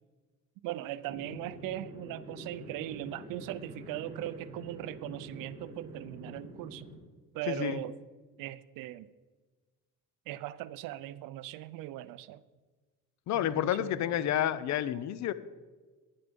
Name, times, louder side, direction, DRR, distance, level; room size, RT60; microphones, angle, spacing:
voice 1, 0.6-6.9 7.3-7.9 8.4-9.1 10.3-12.4 13.3-14.6, right 14 dB, 75° right, 0.6 m, -39 dB
sound 1, 1.0-7.0, right 1 dB, 20° right, 3.5 m, -46 dB
voice 2, 7.5-7.8 13.3-15.3, left 11 dB, 55° left, 0.7 m, -30 dB
11.5 x 10.5 x 5.3 m
cardioid pair, 140°, 33 cm